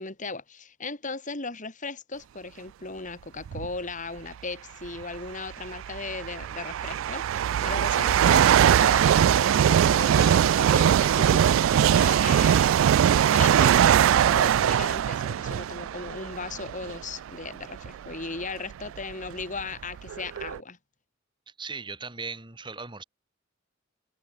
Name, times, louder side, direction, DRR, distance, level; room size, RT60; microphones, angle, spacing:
voice 1, 0.0-12.8 13.2-20.8, left 3 dB, 40° left, 3.3 m, -37 dB
sound 1, 3.5-3.7 4.8-4.9 5.7-17.1 17.7-17.9 18.7-18.8 19.0-20.6, right 9 dB, 85° right, 0.3 m, -21 dB
voice 2, 21.6-23.0, right 4 dB, 25° right, 2.3 m, -38 dB
head